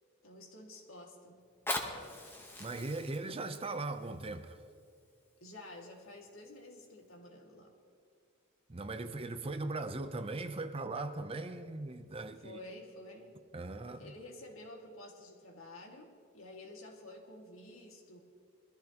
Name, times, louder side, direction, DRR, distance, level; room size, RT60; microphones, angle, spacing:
voice 1, 0.2-1.4 5.4-7.8 12.4-13.4 14.0-18.2, left 1 dB, 80° left, 2.1 m, -51 dB
Fire, 1.4-6.4 7.0-7.1, left 1 dB, 10° left, 1.1 m, -43 dB
voice 2, 2.6-4.6 8.7-12.6 13.5-14.1, right 2 dB, 30° right, 0.6 m, -39 dB
22.0 x 14.0 x 3.0 m
head